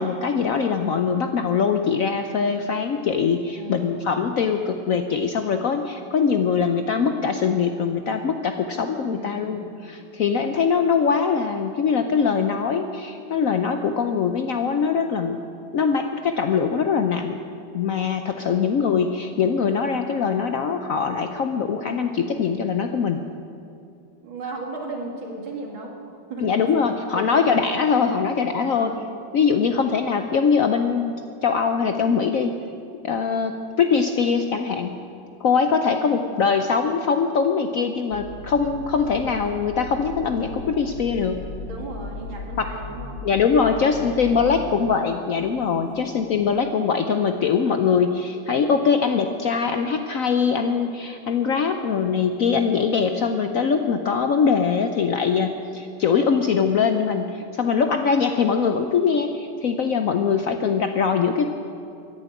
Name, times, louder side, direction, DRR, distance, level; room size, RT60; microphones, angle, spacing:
voice 1, 0.0-15.4 15.7-17.4 17.7-23.2 26.4-28.9 29.3-31.1 31.4-32.6 32.9-35.0 35.4-41.4 42.6-42.7 43.2-61.5, left 6 dB, 70° left, 6 dB, 0.8 m, -22 dB
voice 2, 3.6-4.2 9.1-9.8 18.4-18.7 24.2-25.9 26.3-26.4 27.1-27.5 28.6-29.1 36.0-36.4 41.6-43.2 44.1-44.7 45.8-46.3, right 3 dB, 90° right, 0 dB, 3.0 m, -36 dB
sound 1, 38.1-45.0, left 1 dB, 50° left, 2.9 m, -37 dB
14.5 x 10.5 x 8.8 m, 2.6 s
omnidirectional pair, 2.1 m